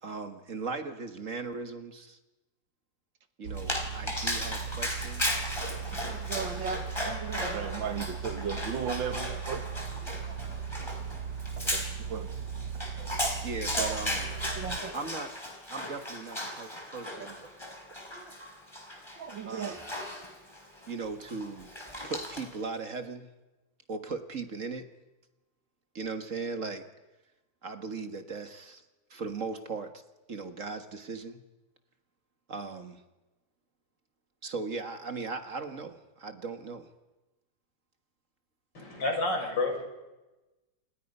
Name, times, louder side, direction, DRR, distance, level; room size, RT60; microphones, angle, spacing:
voice 1, 0.0-2.2 3.4-5.5 7.5-7.9 13.4-14.3 14.9-15.3 15.7-17.4 19.4-19.8 20.9-21.7 22.0-23.3 23.9-24.9 25.9-26.8 27.6-28.8 29.1-30.0 30.3-31.4 32.5-33.0 34.4-36.9, right 4 dB, 45° right, 7 dB, 1.7 m, -38 dB
sound 1, 3.4-14.8, right 7 dB, 65° right, 1.6 m, -38 dB
Dog, 3.6-22.6, left 1 dB, 15° left, 4.5 m, -36 dB
voice 2, 5.9-9.9 10.3-10.5 11.6-12.3 13.2-13.3 13.8-14.0 14.6-14.9 18.1-18.3 19.2-19.8, right 7 dB, 85° right, 8 dB, 2.3 m, -36 dB
voice 3, 38.7-39.8, left 2 dB, 75° left, 3 dB, 6.0 m, -29 dB
29.0 x 27.5 x 5.5 m, 1.1 s
omnidirectional pair, 2.0 m